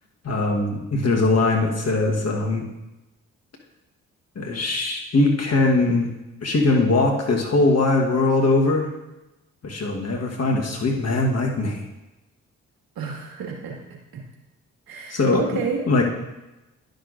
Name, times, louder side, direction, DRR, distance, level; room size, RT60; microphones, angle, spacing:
voice 1, 0.2-2.7 4.3-6.1 6.4-8.9 9.6-11.8 15.1-15.4 15.9-16.0, left 2 dB, 40° left, 1 dB, 1.4 m, -21 dB
voice 2, 13.0-13.8 14.1-14.2 14.9-15.9, right 5 dB, 65° right, -1 dB, 1.9 m, -30 dB
11.5 x 6.4 x 2.6 m, 1.0 s
hypercardioid pair, 45°, 38 cm